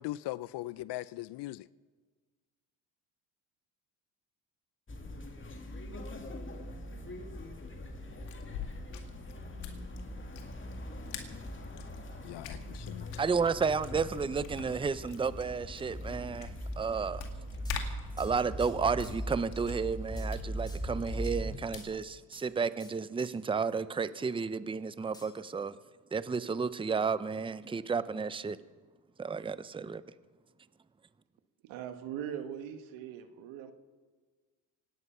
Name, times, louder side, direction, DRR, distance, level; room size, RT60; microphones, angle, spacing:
voice 1, 0.0-1.7 12.2-13.1, left 16 dB, 60° left, 0.6 m, -39 dB
sound 1, 4.9-21.6, equal, 25° left, 2.3 m, -41 dB
sound 2, 8.1-22.1, left 8 dB, 80° left, 2.2 m, -47 dB
voice 2, 13.2-17.2 18.2-25.8 26.1-28.6 29.2-30.0, right 5 dB, 10° right, 0.6 m, -32 dB
sound 3, 17.6-19.4 20.2-20.4 20.7-21.4 21.8-22.5 22.8-23.3 25.1-25.7, left 1 dB, 10° left, 2.9 m, -56 dB
voice 3, 31.6-33.7, right 9 dB, 80° right, 1.5 m, -40 dB
25.0 x 9.6 x 5.7 m
supercardioid pair, 75°, 45 cm